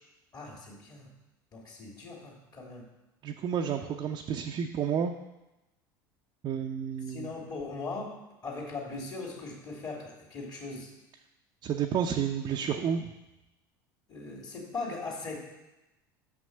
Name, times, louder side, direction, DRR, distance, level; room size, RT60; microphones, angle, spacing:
voice 1, 0.3-1.1 1.5-2.9 7.1-8.2 8.4-10.9 14.1-15.4, left 3 dB, 35° left, -1 dB, 2.9 m, -39 dB
voice 2, 3.2-5.1 6.4-7.3 11.6-13.1, right 8 dB, 40° right, 2 dB, 0.6 m, -30 dB
6.2 x 6.0 x 6.6 m, 0.99 s
hypercardioid pair, 75°, 11 cm